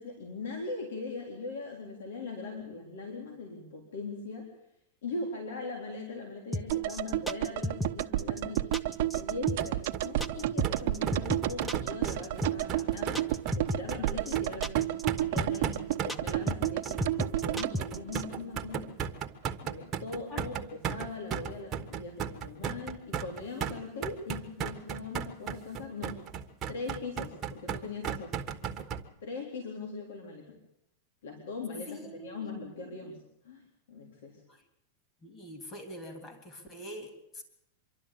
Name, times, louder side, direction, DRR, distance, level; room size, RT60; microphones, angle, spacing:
voice 1, 0.0-4.5 5.0-13.3 13.5-14.9 15.2-18.9 19.6-26.2 26.7-28.3 29.2-30.6 31.2-33.6 33.9-34.4, left 3 dB, 85° left, 2 dB, 3.9 m, -40 dB
sound 1, 6.5-18.2, equal, 5° left, 0.8 m, -34 dB
sound 2, 6.7-18.9 19.1-19.2, right 15 dB, 60° right, 1.0 m, -32 dB
sound 3, 9.6-29.0, right 7 dB, 25° right, 1.3 m, -36 dB
voice 2, 31.9-33.0 34.5-34.6 35.2-37.4, left 1 dB, 25° left, 6 dB, 3.3 m, -45 dB
25.5 x 12.0 x 8.6 m, 0.80 s
supercardioid pair, 145°, 0 cm